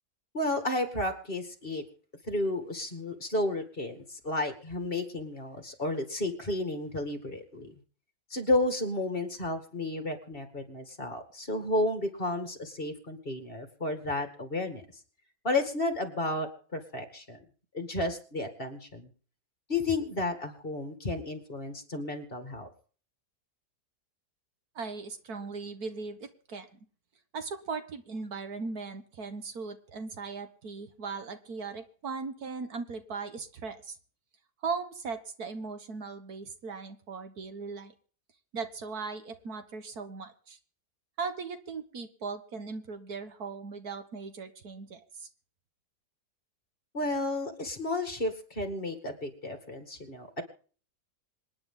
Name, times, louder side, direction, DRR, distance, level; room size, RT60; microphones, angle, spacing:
voice 1, 0.3-1.8 2.3-7.7 8.3-14.8 15.4-17.4 17.7-19.1 19.7-22.7 46.9-50.4, left 2 dB, 35° left, 7 dB, 2.4 m, -32 dB
voice 2, 24.8-26.7 27.3-34.0 34.6-37.9 38.5-40.6 41.2-45.3, right 4 dB, 65° right, 9 dB, 1.9 m, -38 dB
26.5 x 9.6 x 3.9 m, 0.42 s
omnidirectional pair, 1.8 m